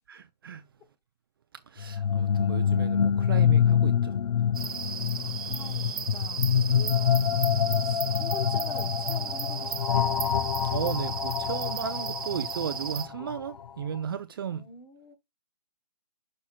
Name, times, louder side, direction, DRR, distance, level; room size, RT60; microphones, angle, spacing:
voice 1, 0.1-0.7 1.7-4.2 10.6-14.6, right 8 dB, 35° right, 0.5 m, -35 dB
sound 1, 1.8-13.6, left 8 dB, 65° left, 0.5 m, -26 dB
sound 2, 4.5-13.1, right 7 dB, 60° right, 1.3 m, -35 dB
voice 2, 5.2-10.2 14.5-15.1, left 4 dB, 15° left, 1.3 m, -45 dB
6.4 x 6.1 x 4.1 m
figure-of-eight pair, 145°, 21 cm